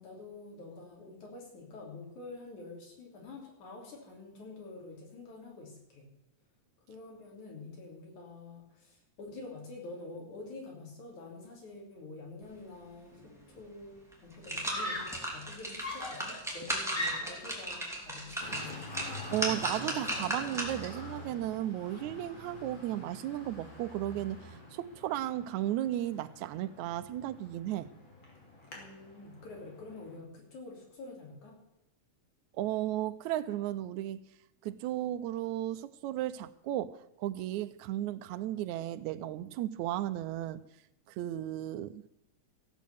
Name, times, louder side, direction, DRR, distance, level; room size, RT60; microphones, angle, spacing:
voice 1, 0.0-6.1 6.9-18.9 28.7-31.6, left 3 dB, 85° left, -1 dB, 4.6 m, -47 dB
Screaming, 13.1-13.6 14.6-15.3 15.8-17.6, left 1 dB, 15° left, 2.5 m, -37 dB
sound 1, 13.6-13.7 14.1-21.0 21.4-21.5, right 1 dB, ahead, 2.4 m, -37 dB
Traffic noise roadway noise, 18.4-30.2, left 1 dB, 40° left, 3.5 m, -47 dB
voice 2, 19.3-27.9 32.5-34.2 34.6-40.6 41.1-42.0, right 13 dB, 85° right, 14 dB, 2.0 m, -35 dB
15.0 x 8.4 x 7.0 m, 0.86 s
omnidirectional pair, 3.3 m